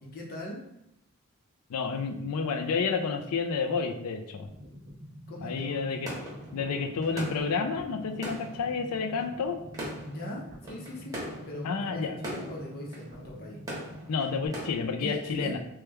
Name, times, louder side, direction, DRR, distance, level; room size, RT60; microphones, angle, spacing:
voice 1, 0.0-0.6 5.3-5.9 10.0-11.2 11.5-13.6 15.0-15.6, left 1 dB, 45° left, -2 dB, 0.7 m, -39 dB
voice 2, 1.7-4.5 5.4-6.1 6.5-9.6 11.6-12.2 14.1-15.6, left 5 dB, 85° left, 6 dB, 0.4 m, -30 dB
sound 1, 4.5-14.5, equal, 40° right, 0.5 m, -46 dB
sound 2, 6.1-14.7, right 1 dB, 15° right, 1.0 m, -42 dB
3.0 x 2.2 x 3.4 m, 0.81 s
head